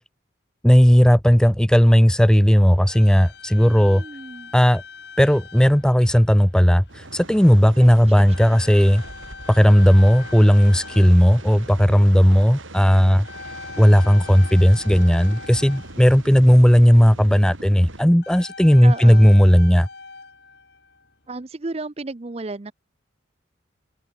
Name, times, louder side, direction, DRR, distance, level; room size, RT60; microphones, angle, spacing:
voice 1, 0.6-4.0 4.5-4.8 5.2-9.0 9.5-13.3 13.8-19.9, equal, 5° left, 0.7 m, -15 dB
sound 1, 2.1-16.6 18.1-21.4, left 4 dB, 55° left, 4.3 m, -42 dB
voice 2, 3.7-4.5 7.8-8.3 18.8-19.3 21.3-22.7, right 3 dB, 30° right, 0.6 m, -33 dB
sound 2, 6.9-18.0, right 2 dB, 85° right, 4.6 m, -40 dB
head